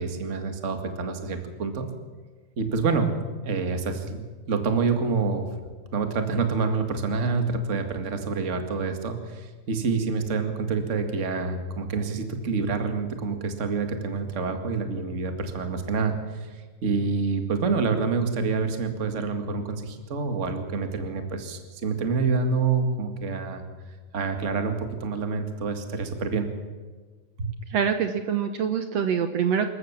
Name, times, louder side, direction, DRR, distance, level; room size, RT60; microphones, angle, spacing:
voice 1, 0.0-1.9 2.6-3.1 3.4-5.5 5.9-23.6 24.1-26.5 27.4-27.5, right 4 dB, 30° right, 6 dB, 1.8 m, -27 dB
voice 2, 27.7-29.7, right 7 dB, 65° right, 8 dB, 2.0 m, -25 dB
26.5 x 14.0 x 7.4 m, 1.4 s
omnidirectional pair, 3.5 m